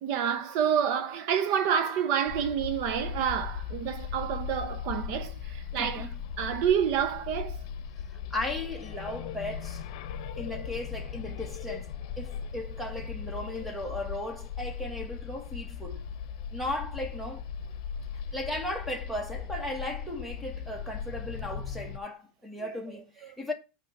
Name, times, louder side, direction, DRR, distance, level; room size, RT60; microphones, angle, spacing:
voice 1, 0.0-6.1 6.4-7.6, right 8 dB, 55° right, 0.7 m, -28 dB
sound 1, 2.3-22.0, left 7 dB, 65° left, 0.8 m, -38 dB
voice 2, 5.8-6.1 8.1-9.8 10.4-16.0 16.5-17.5 18.3-23.5, left 1 dB, ahead, 1.2 m, -36 dB
8.9 x 3.0 x 6.3 m
supercardioid pair, 165°, 3 cm